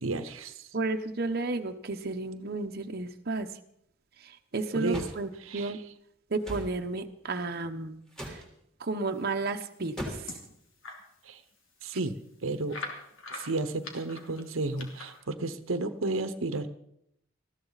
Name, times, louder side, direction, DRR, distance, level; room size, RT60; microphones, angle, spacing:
voice 1, 0.0-0.7 4.7-5.1 5.4-5.8 11.2-11.4 11.8-12.8 13.3-16.7, right 2 dB, 85° right, 11 dB, 1.0 m, -32 dB
voice 2, 0.7-3.5 4.2-5.8 6.3-8.0 8.2-8.4 8.8-10.2, right 3 dB, 50° right, 5 dB, 1.0 m, -32 dB
sound 1, 4.9-5.2 6.4-6.7 8.1-8.5 10.0-10.4, equal, 5° left, 3.6 m, -37 dB
sound 2, 9.5-11.1 11.5-11.6 11.9-12.0 12.7-15.2, left 3 dB, 80° left, 3.0 m, -43 dB
20.0 x 15.0 x 4.1 m, 0.74 s
head